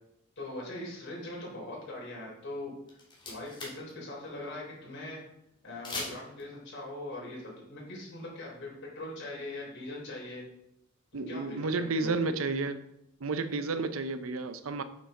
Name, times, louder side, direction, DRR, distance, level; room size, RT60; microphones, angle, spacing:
voice 1, 0.4-2.7 3.3-5.2 5.6-10.4 11.1-12.1, left 1 dB, 60° left, -3 dB, 3.4 m, -41 dB
sound 1, 2.9-3.9 4.2-4.3 5.8-6.4, left 2 dB, 25° left, 2.0 m, -39 dB
voice 2, 11.1-12.8 13.2-14.8, right 3 dB, 85° right, 11 dB, 0.6 m, -31 dB
8.6 x 6.1 x 3.7 m, 0.79 s
head